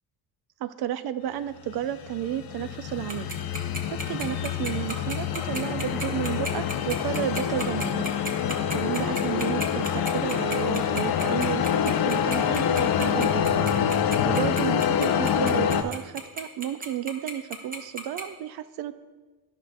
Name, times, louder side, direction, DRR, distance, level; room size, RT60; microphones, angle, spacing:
voice 1, 0.6-3.3 3.8-8.0 8.7-13.7 14.2-19.0, right 11 dB, 80° right, 13 dB, 0.5 m, -32 dB
sound 1, 1.7-15.8, left 8 dB, 70° left, 0.6 m, -26 dB
Tick-tock, 3.1-18.2, right 2 dB, 20° right, 0.8 m, -33 dB
13.0 x 5.6 x 2.5 m, 1.3 s
cardioid pair, 145°, 37 cm